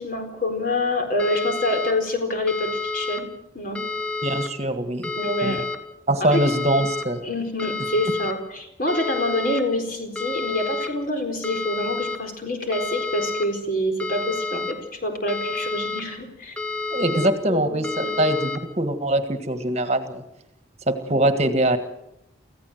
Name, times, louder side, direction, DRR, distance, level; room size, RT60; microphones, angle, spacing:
voice 1, 0.0-3.3 3.5-3.8 5.2-5.7 6.2-6.5 7.2-16.6 17.1-17.2 17.5-18.2 21.1-21.2, left 1 dB, 45° left, 5 dB, 4.3 m, -26 dB
sound 1, 1.2-1.9 2.5-3.2 3.8-4.5 5.0-5.8 6.3-7.0 7.6-8.3 8.9-9.6 10.2-10.9 11.4-12.2 12.7-13.5 14.0-14.7 15.3-16.0 16.6-17.3 17.8-18.6, left 3 dB, 5° left, 1.7 m, -29 dB
voice 2, 4.2-5.1 5.4-5.6 6.1-7.2 16.9-20.2 20.9-21.8, right 1 dB, 35° right, 8 dB, 1.7 m, -23 dB
25.0 x 15.5 x 7.8 m, 0.84 s
head